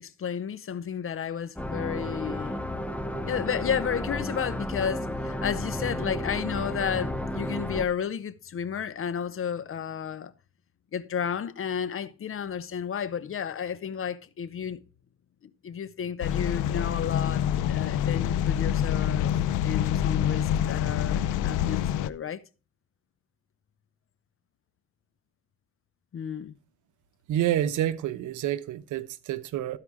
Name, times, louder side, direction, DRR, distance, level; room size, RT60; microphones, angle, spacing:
voice 1, 0.0-2.6 3.3-10.3 10.9-14.8 15.4-19.3 19.6-22.4 26.1-26.5, left 8 dB, 45° left, 0.8 m, -32 dB
sound 1, 1.6-7.9, left 1 dB, 5° left, 0.9 m, -32 dB
sound 2, 16.2-22.1, left 10 dB, 85° left, 0.6 m, -26 dB
voice 2, 27.3-29.8, right 12 dB, 80° right, 0.8 m, -28 dB
13.5 x 4.9 x 4.8 m
cardioid pair, 90°, 30 cm